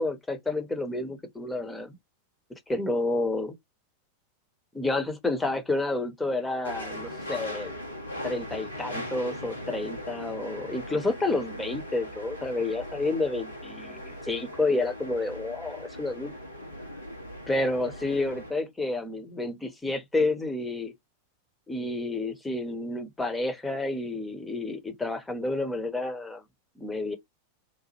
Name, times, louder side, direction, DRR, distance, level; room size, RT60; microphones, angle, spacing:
voice 1, 0.0-2.0 2.7-3.5 4.7-7.7 8.2-16.3 17.5-20.9 21.7-26.4 26.8-27.2, left 2 dB, 10° left, 0.9 m, -30 dB
sound 1, 6.6-18.5, left 1 dB, 80° left, 1.2 m, -39 dB
2.9 x 2.2 x 2.9 m
figure-of-eight pair, 90°, 0 cm